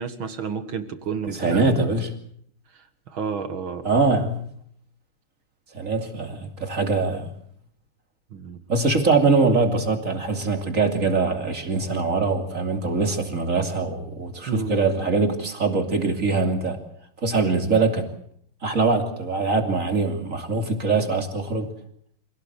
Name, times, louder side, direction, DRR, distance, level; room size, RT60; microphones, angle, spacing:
voice 1, 0.0-1.6 2.7-3.8 8.3-8.6 14.5-14.8, right 6 dB, 65° right, 9 dB, 2.4 m, -31 dB
voice 2, 1.3-2.1 3.8-4.4 5.7-7.3 8.7-16.8 17.2-18.1 18.6-21.7, right 3 dB, 35° right, 5 dB, 3.1 m, -23 dB
26.5 x 17.5 x 8.1 m, 0.64 s
omnidirectional pair, 2.4 m